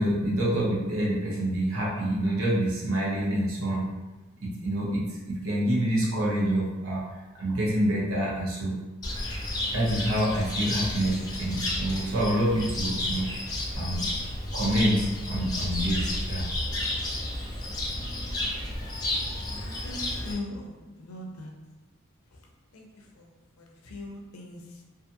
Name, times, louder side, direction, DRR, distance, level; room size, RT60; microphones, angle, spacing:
voice 1, 0.0-3.9 4.4-7.0 7.3-8.7 9.7-13.3 13.7-14.0 14.5-16.4, right 1 dB, 70° right, -5 dB, 0.8 m, -27 dB
Cricket, 9.0-20.3, left 1 dB, 20° left, 0.5 m, -32 dB
voice 2, 19.2-21.5 22.3-22.4 22.7-24.8, left 2 dB, 75° left, 1 dB, 0.5 m, -41 dB
2.6 x 2.5 x 2.5 m, 1.1 s
head